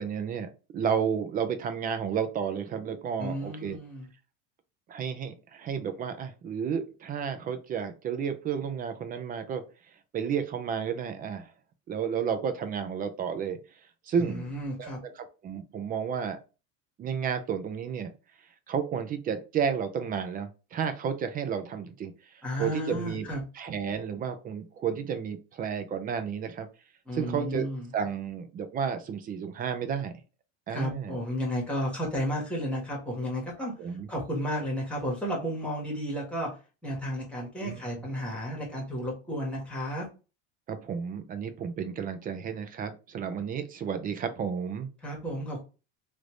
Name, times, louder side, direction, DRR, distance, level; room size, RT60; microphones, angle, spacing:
voice 1, 0.0-3.8 4.9-9.6 10.1-11.5 11.9-13.6 14.1-14.5 14.8-14.9 15.4-16.4 17.0-18.1 18.7-23.3 23.6-26.7 27.1-27.7 27.9-30.1 30.7-31.2 33.8-34.1 37.6-37.8 40.7-44.9, right 7 dB, 25° right, 9 dB, 0.4 m, -32 dB
voice 2, 3.2-4.1 14.2-15.0 22.4-23.4 27.1-27.9 30.7-33.7 34.1-36.5 36.8-40.0 45.0-45.6, equal, 5° left, -2 dB, 1.4 m, -33 dB
3.2 x 2.6 x 3.1 m, 0.32 s
cardioid pair, 140°, 34 cm